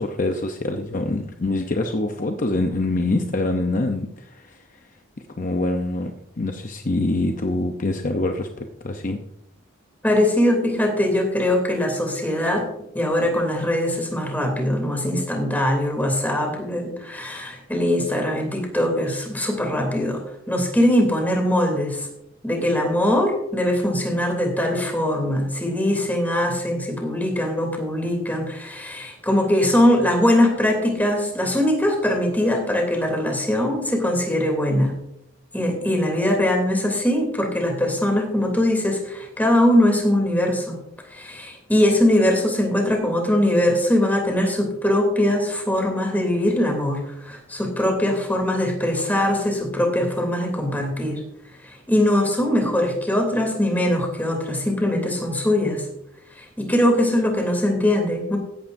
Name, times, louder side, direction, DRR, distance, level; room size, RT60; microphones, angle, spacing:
voice 1, 0.0-4.9 5.4-6.1 6.4-9.2, left 2 dB, 40° left, 5 dB, 0.7 m, -25 dB
voice 2, 10.0-12.7 12.9-22.1 22.4-34.9 35.5-40.8 41.1-51.2 51.6-55.9 56.3-58.4, left 1 dB, 10° left, 2 dB, 3.0 m, -21 dB
16.0 x 11.5 x 2.6 m, 0.81 s
head